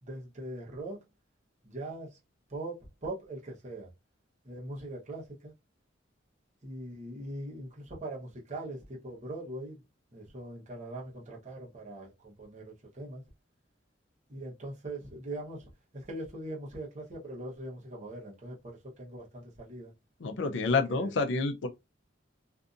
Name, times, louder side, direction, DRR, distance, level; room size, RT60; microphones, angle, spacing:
voice 1, 0.0-1.0 1.6-2.2 2.5-3.9 4.4-5.5 6.6-9.8 10.1-13.2 14.3-19.9 20.9-21.1, right 1 dB, 40° right, 0.9 m, -41 dB
voice 2, 20.2-21.7, left 4 dB, 70° left, 0.5 m, -28 dB
2.6 x 2.5 x 2.5 m
head